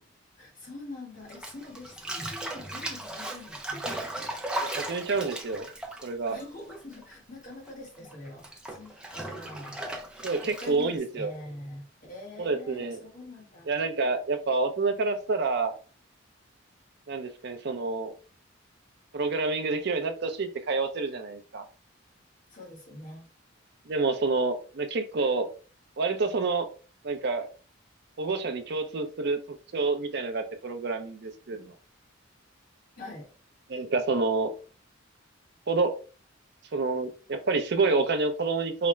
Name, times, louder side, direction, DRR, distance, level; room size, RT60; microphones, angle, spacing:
voice 1, 0.4-3.8 6.3-9.9 10.4-13.7 22.5-23.3 33.0-33.3, left 2 dB, 40° left, 1.4 m, -44 dB
Bathtub (filling or washing), 1.3-7.1 7.4-11.0, right 1 dB, 5° right, 0.5 m, -37 dB
voice 2, 4.6-5.7 6.0-6.4 10.2-11.3 12.4-13.0 13.7-15.7 17.1-18.1 19.1-21.6 23.9-25.5 26.0-26.7 27.0-27.5 28.2-29.4 29.7-31.7 33.7-34.5 35.7-35.9 36.7-38.9, right 3 dB, 55° right, 0.5 m, -28 dB
4.8 x 2.1 x 3.1 m
head